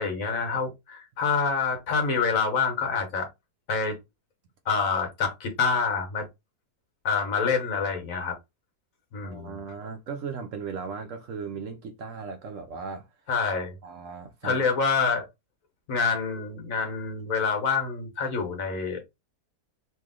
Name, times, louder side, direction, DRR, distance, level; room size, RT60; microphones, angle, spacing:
voice 1, 0.0-3.3 3.7-4.0 4.6-6.3 7.0-8.4 9.1-9.6 13.3-13.8 14.4-15.3 15.9-19.0, left 5 dB, 60° left, 1.3 m, -27 dB
voice 2, 9.2-13.1 13.8-14.6, right 5 dB, 65° right, 0.9 m, -37 dB
3.1 x 2.7 x 3.6 m
omnidirectional pair, 1.7 m